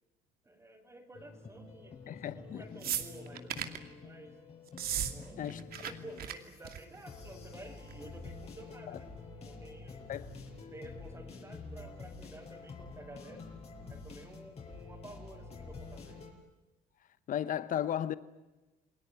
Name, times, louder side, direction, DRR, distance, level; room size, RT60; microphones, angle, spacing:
voice 1, 0.4-4.4 5.1-5.4 5.8-9.1 9.4-10.0 10.6-13.5 13.9-16.2, right 1 dB, 15° right, 4.9 m, -52 dB
sound 1, 1.1-16.3, left 4 dB, 40° left, 6.8 m, -48 dB
voice 2, 2.1-2.6 5.4-5.9 8.9-9.0 10.1-10.3 17.3-18.2, left 10 dB, 55° left, 1.0 m, -35 dB
sound 2, 2.8-3.8 4.7-5.1 5.4-5.9 6.2-6.3 6.6-7.0 7.9-8.0, right 9 dB, 60° right, 2.6 m, -35 dB
29.0 x 20.5 x 9.3 m
cardioid pair, 110°, 17 cm